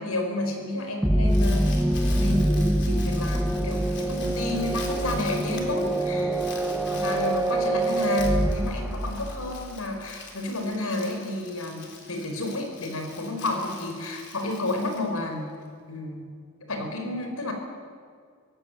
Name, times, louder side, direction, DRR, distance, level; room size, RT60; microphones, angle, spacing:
voice 1, 0.0-1.8 2.2-6.4 6.9-15.5 15.9-16.3 16.7-17.5, left 2 dB, 85° left, 4 dB, 5.0 m, -31 dB
Crumpling crinkling, 1.0-15.6, left 5 dB, 55° left, 3.9 m, -45 dB
sound 1, 1.0-9.7, right 1 dB, ahead, 0.8 m, -25 dB
24.5 x 16.5 x 9.2 m, 2.1 s
head